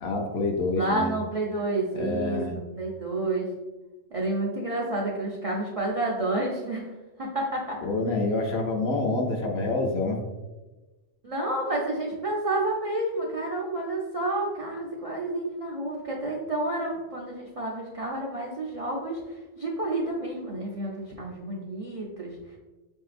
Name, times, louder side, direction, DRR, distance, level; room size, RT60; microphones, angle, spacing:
voice 1, 0.0-1.1 1.9-2.5 7.8-10.2, left 2 dB, 60° left, 2 dB, 0.8 m, -27 dB
voice 2, 0.8-2.4 2.8-3.5 4.1-6.9 7.2-7.8 11.2-22.4, right 2 dB, 65° right, -3 dB, 0.3 m, -30 dB
5.8 x 2.7 x 2.4 m, 1.1 s
omnidirectional pair, 1.3 m